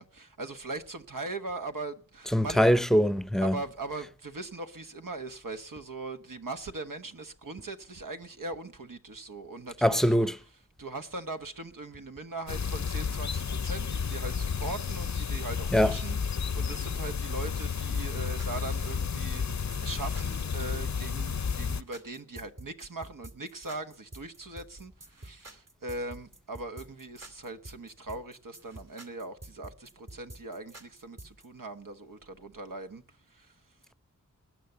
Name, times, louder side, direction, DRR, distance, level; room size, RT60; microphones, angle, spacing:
voice 1, 0.0-2.7 3.4-10.1 10.8-33.8, right 2 dB, 80° right, 1.3 m, -40 dB
voice 2, 2.3-3.6 9.8-10.3 15.7-15.9, equal, ahead, 0.7 m, -23 dB
sound 1, 12.5-21.8, left 6 dB, 60° left, 0.6 m, -32 dB
sound 2, 17.5-31.5, right 1 dB, 50° right, 2.4 m, -48 dB
20.0 x 9.3 x 6.8 m
wide cardioid pair, 65°, 32 cm